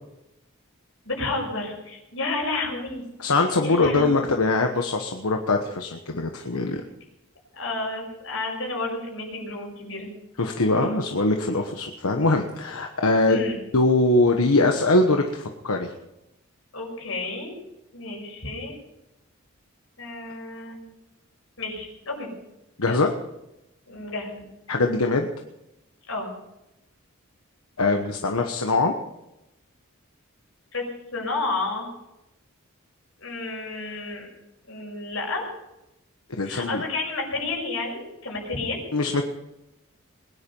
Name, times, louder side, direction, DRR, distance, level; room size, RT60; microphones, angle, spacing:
voice 1, 1.0-3.0 3.6-4.2 7.5-10.1 13.3-13.6 16.7-17.6 17.9-18.8 20.0-20.9 21.6-22.3 22.9-23.0 23.9-24.4 26.1-26.3 30.7-30.9 31.1-31.9 33.2-34.3 34.7-35.5 36.5-38.8, left 2 dB, 70° left, 0 dB, 5.8 m, -31 dB
voice 2, 3.2-6.8 10.4-13.5 13.7-15.9 22.8-23.1 24.7-25.3 27.8-28.9 36.4-36.8 38.9-39.2, left 2 dB, 90° left, 3 dB, 1.2 m, -22 dB
21.0 x 10.0 x 5.5 m, 0.91 s
head